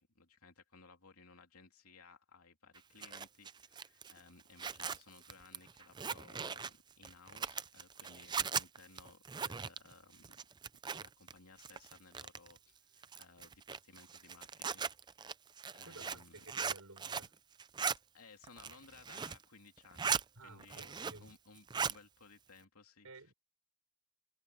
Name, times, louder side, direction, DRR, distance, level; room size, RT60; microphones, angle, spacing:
voice 1, 0.0-10.3 10.8-15.2 15.7-16.4 18.1-20.9 21.2-23.3, left 4 dB, 85° left, 2.9 m, -60 dB
Zipper (clothing), 2.8-11.3 11.6-12.6 13.0-17.3 17.6-18.0 18.4-19.4 19.8-20.2 20.6-21.3 21.6-22.0, right 6 dB, 20° right, 0.4 m, -39 dB
voice 2, 15.8-17.3 20.3-21.3 23.0-23.3, right 2 dB, 85° right, 6.5 m, -55 dB
head